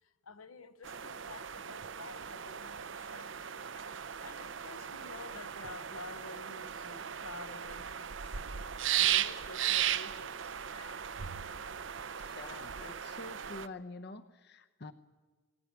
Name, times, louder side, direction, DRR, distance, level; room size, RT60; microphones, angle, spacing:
voice 1, 0.0-3.7 4.2-8.3 8.9-11.3, left 3 dB, 85° left, 1.2 m, -51 dB
sound 1, 0.8-13.7, right 10 dB, 60° right, 0.7 m, -37 dB
voice 2, 12.2-14.9, left 3 dB, 50° left, 0.8 m, -47 dB
21.5 x 17.5 x 9.5 m
head